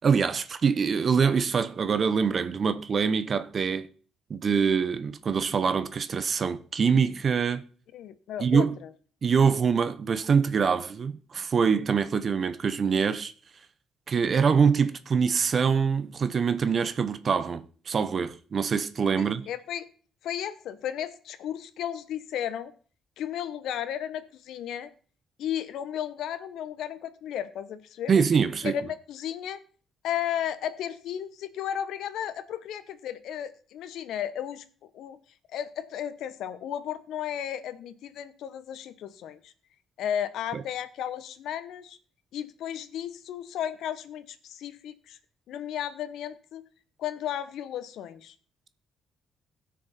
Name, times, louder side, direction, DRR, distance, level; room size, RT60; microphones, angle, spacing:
voice 1, 0.0-3.9 4.3-7.6 8.4-8.7 9.2-13.3 14.1-19.4 28.1-28.7 40.5-40.6, right 6 dB, 45° right, 0.8 m, -24 dB
voice 2, 7.9-8.9 9.4-9.5 19.2-19.9 20.2-22.7 23.2-24.9 25.4-28.1 28.6-29.6 30.0-34.6 34.9-35.2 35.5-39.5 40.0-42.0 42.3-45.2 45.5-46.6 47.0-48.3, left 10 dB, 80° left, 0.9 m, -34 dB
16.0 x 6.4 x 4.2 m
cardioid pair, 90°, 0 cm